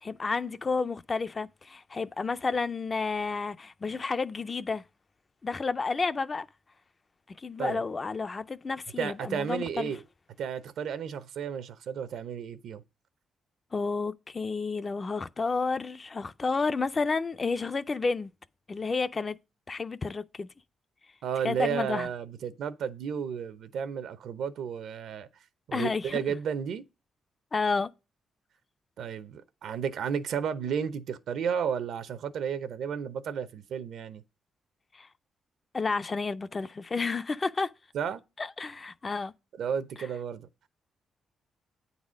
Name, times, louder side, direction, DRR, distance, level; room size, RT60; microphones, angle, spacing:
voice 1, 0.0-4.8 5.4-6.5 7.4-9.9 13.7-18.3 18.7-19.4 19.7-20.5 21.4-22.1 25.7-26.2 27.5-27.9 34.9-35.1 35.7-37.7 38.4-39.3, left 4 dB, 25° left, 0.4 m, -31 dB
voice 2, 9.0-10.0 10.4-12.8 21.2-25.3 25.7-26.9 29.0-34.2 37.9-38.2 39.6-40.5, right 7 dB, 65° right, 0.7 m, -33 dB
9.4 x 4.1 x 6.2 m
wide cardioid pair, 175°, 0 cm